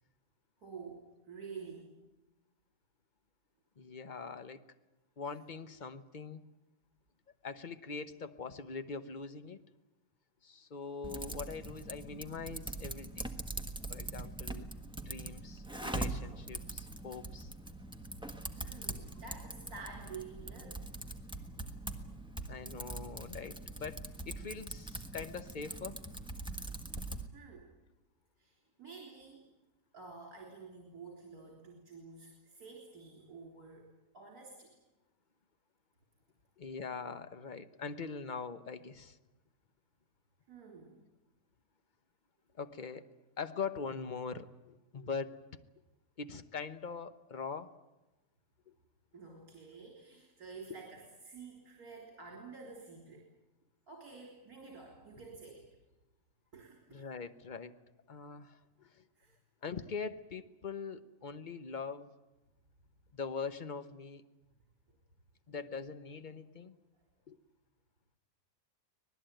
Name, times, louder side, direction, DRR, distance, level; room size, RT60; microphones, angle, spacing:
voice 1, 0.6-2.0 18.5-20.9 27.3-27.7 28.4-29.5 29.9-34.8 40.5-41.0 49.1-53.3 53.9-55.7 56.5-57.1 59.2-59.4, right 4 dB, 60° right, -1 dB, 4.2 m, -50 dB
voice 2, 3.8-4.6 5.2-6.5 7.4-9.6 10.4-13.3 13.9-14.7 15.0-17.5 22.5-26.0 36.6-39.2 42.6-43.1 43.4-45.4 46.2-47.7 48.7-48.8 56.9-57.7 58.1-59.1 59.6-62.1 63.1-64.2 65.5-66.8 67.3-67.4, left 5 dB, 35° left, 10 dB, 0.9 m, -42 dB
Typing, 11.0-27.3, right 2 dB, 5° right, 1.3 m, -42 dB
25.0 x 19.0 x 9.1 m, 1.0 s
omnidirectional pair, 1.8 m